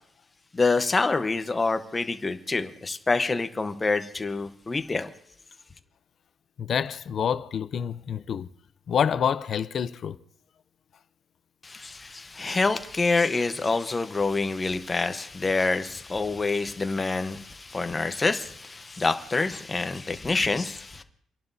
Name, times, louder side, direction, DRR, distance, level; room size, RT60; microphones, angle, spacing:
voice 1, 0.5-5.1 11.6-21.0, left 3 dB, 20° left, 0.9 m, -27 dB
voice 2, 6.6-8.5 8.9-10.2, left 8 dB, 50° left, 0.6 m, -27 dB
30.0 x 11.0 x 2.7 m
cardioid pair, 140°, 0 cm